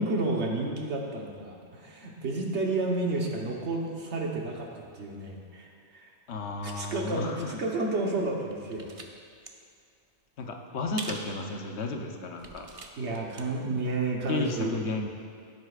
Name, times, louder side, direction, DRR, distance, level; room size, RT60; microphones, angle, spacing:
voice 1, 0.0-5.7 5.9-6.1 6.6-8.9 13.0-14.7, right 2 dB, 75° right, -1 dB, 1.5 m, -31 dB
voice 2, 6.3-7.5 10.4-12.7 14.3-15.1, left 3 dB, 75° left, 3 dB, 1.1 m, -33 dB
sound 1, 8.1-9.1 9.3-9.5 11.0-11.3 11.8-11.9 12.4-13.4 13.8-13.9, right 3 dB, 35° right, 0.6 m, -42 dB
15.5 x 8.1 x 2.4 m, 2.2 s
omnidirectional pair, 1.2 m